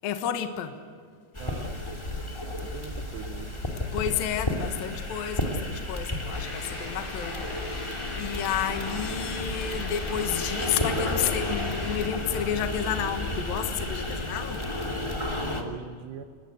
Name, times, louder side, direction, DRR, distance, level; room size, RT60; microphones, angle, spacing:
voice 1, 0.0-0.8 3.9-14.7, left 9 dB, 65° left, 2.8 m, -31 dB
sound 1, 1.3-15.6, left 1 dB, 10° left, 1.9 m, -32 dB
voice 2, 1.4-3.6 15.3-16.2, right 8 dB, 75° right, 3.0 m, -42 dB
sound 2, 6.3-12.1, left 2 dB, 45° left, 7.1 m, -40 dB
29.5 x 21.0 x 8.1 m
omnidirectional pair, 5.2 m